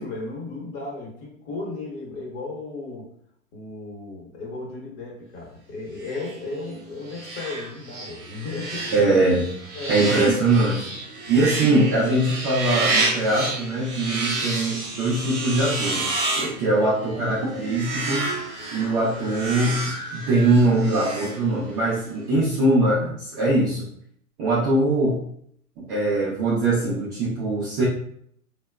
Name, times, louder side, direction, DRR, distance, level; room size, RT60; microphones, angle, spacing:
voice 1, 0.0-3.1 3.5-9.4 9.7-10.0 11.3-11.7 17.1-17.3, left 3 dB, 45° left, -2 dB, 1.1 m, -35 dB
sound 1, 6.0-21.9, right 2 dB, 40° right, 0.8 m, -30 dB
voice 2, 8.9-9.4 9.9-10.9 11.3-18.2 18.7-19.8 20.1-23.9 24.4-25.2 25.8-27.8, right 2 dB, 20° right, -8 dB, 0.4 m, -22 dB
2.8 x 2.2 x 2.2 m, 0.66 s
hypercardioid pair, 125°, 44 cm